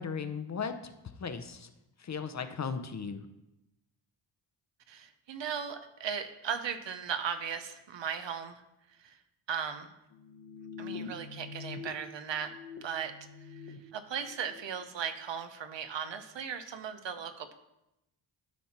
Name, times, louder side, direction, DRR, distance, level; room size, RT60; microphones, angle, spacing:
voice 1, 0.0-1.7 2.0-3.2, left 5 dB, 35° left, 9 dB, 0.7 m, -37 dB
voice 2, 4.9-8.6 9.0-9.2 9.5-9.9 10.8-12.5 12.8-17.5, right 7 dB, 65° right, 9 dB, 0.9 m, -37 dB
sound 1, 10.1-11.9 12.2-13.8 14.2-14.6, left 5 dB, 65° left, 1.2 m, -45 dB
12.5 x 4.3 x 4.3 m, 0.90 s
cardioid pair, 90°, 46 cm